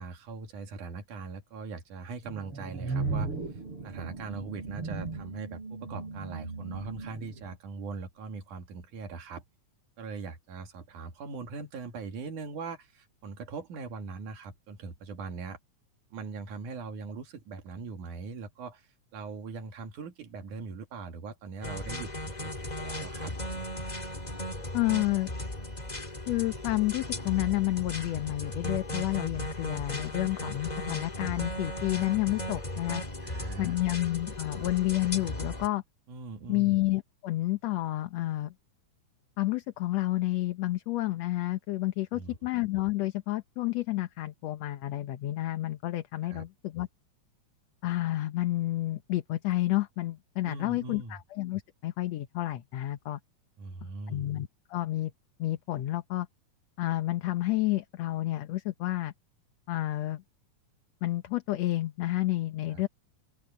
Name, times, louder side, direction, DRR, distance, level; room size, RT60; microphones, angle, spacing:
voice 1, 0.0-3.3 3.8-9.4 10.0-15.6 16.1-23.7 33.2-33.8 36.1-36.8 42.1-42.4 46.2-46.5 50.4-51.2 53.6-54.3 62.7-62.8, right 4 dB, 75° right, 3.9 m, -41 dB
sound 1, 2.2-7.5, right 4 dB, 45° right, 5.4 m, -36 dB
sound 2, 21.6-35.7, left 1 dB, 15° left, 1.7 m, -37 dB
voice 2, 24.7-25.3 26.3-33.0 33.6-35.8 36.5-38.5 39.4-46.9 47.8-53.2 54.1-55.1 55.4-56.3 56.8-59.1 59.7-60.2 61.0-62.9, left 16 dB, 65° left, 1.9 m, -30 dB
open air
omnidirectional pair, 3.6 m